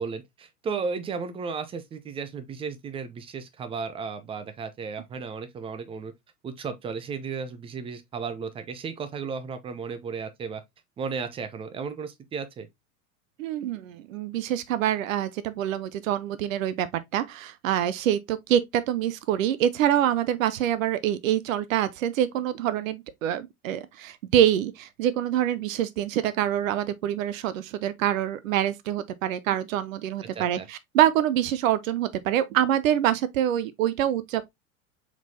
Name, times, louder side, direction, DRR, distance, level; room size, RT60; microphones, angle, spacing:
voice 1, 0.0-6.1 6.4-10.6 11.0-12.7 30.3-30.7, right 5 dB, 15° right, 0.5 m, -34 dB
voice 2, 13.4-16.9 17.1-34.5, right 11 dB, 60° right, 0.7 m, -25 dB
4.7 x 3.8 x 2.6 m
figure-of-eight pair, 85°, 45 cm